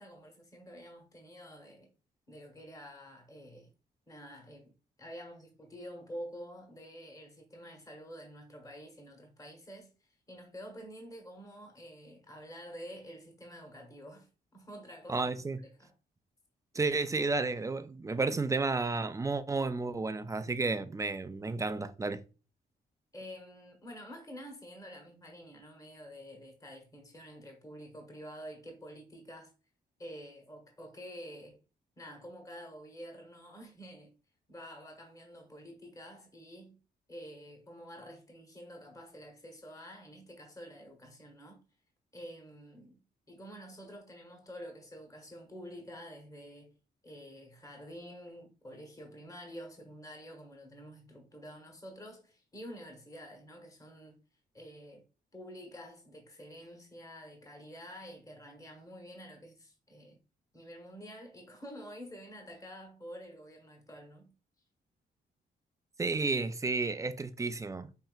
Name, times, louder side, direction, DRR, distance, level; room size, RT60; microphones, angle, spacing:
voice 1, 0.0-1.9 2.3-3.7 4.1-4.7 5.0-15.9 23.1-29.5 30.0-31.6 32.0-34.1 34.5-36.8 37.1-41.6 42.1-43.0 43.3-46.7 47.0-54.2 54.5-55.0 55.3-60.2 60.5-64.3, equal, 20° left, 1.2 m, -48 dB
voice 2, 15.1-15.6 16.7-22.2 66.0-67.9, right 3 dB, 15° right, 0.4 m, -32 dB
5.5 x 2.8 x 2.4 m
cardioid pair, 80°, 18 cm